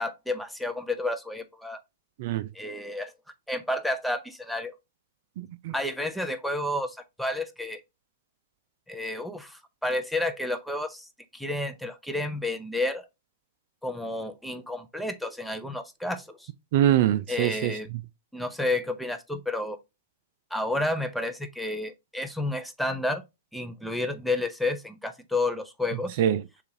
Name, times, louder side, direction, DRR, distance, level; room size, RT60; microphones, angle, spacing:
voice 1, 0.0-1.8 2.5-3.1 3.5-4.7 5.7-7.8 8.9-13.1 13.8-16.5 17.3-17.9 18.3-19.8 20.5-23.2 23.5-26.2, left 2 dB, ahead, 0.5 m, -31 dB
voice 2, 5.4-5.7 16.7-17.8 26.2-26.6, right 12 dB, 55° right, 0.4 m, -24 dB
6.6 x 2.4 x 2.7 m
hypercardioid pair, 120°, 0 cm